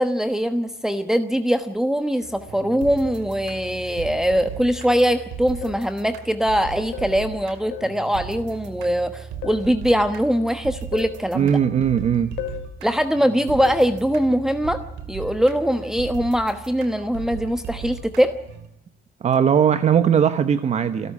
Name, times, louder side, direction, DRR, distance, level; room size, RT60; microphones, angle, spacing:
voice 1, 0.0-11.6 12.8-14.8 15.1-18.3, equal, 5° right, 7 dB, 1.1 m, -22 dB
sound 1, 2.2-18.7, right 6 dB, 90° right, 2.8 m, -37 dB
sound 2, 4.9-5.2 5.6-5.9 6.9-7.2 7.7-8.0 9.4-9.7 10.9-11.2 12.4-12.7 13.6-13.9, left 12 dB, 80° left, 2.1 m, -34 dB
voice 2, 11.3-12.3 19.2-21.1, right 8 dB, 40° right, 11 dB, 0.9 m, -19 dB
27.0 x 12.5 x 8.4 m, 0.85 s
cardioid pair, 110°, 17 cm